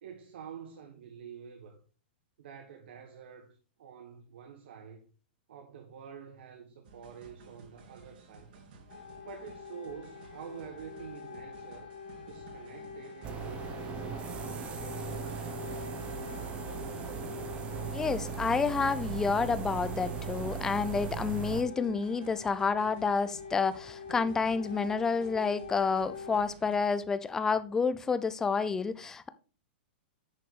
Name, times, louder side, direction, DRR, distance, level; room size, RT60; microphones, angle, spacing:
voice 1, 0.0-1.8 2.4-5.1 5.5-8.5 9.2-11.9 12.3-15.4, right 7 dB, 70° right, 1.5 m, -48 dB
sound 1, 6.8-26.8, right 4 dB, 55° right, 2.7 m, -55 dB
sound 2, 8.9-26.5, left 5 dB, 65° left, 3.4 m, -45 dB
sound 3, 13.2-21.6, right 8 dB, 20° right, 1.0 m, -38 dB
voice 2, 17.9-29.3, left 5 dB, 10° left, 0.4 m, -29 dB
10.0 x 5.6 x 3.8 m
supercardioid pair, 165°, 6 cm